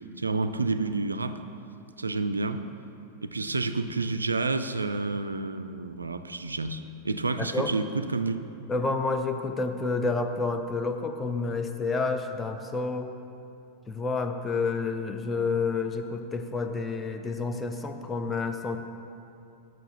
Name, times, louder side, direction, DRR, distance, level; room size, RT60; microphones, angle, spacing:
voice 1, 0.2-1.4 2.0-2.6 3.2-8.4, right 3 dB, 80° right, 10 dB, 0.3 m, -29 dB
voice 2, 7.4-7.7 8.7-13.1 13.9-18.8, left 3 dB, 15° left, 5 dB, 0.5 m, -29 dB
6.9 x 6.2 x 5.6 m, 2.6 s
figure-of-eight pair, 90°, 0 cm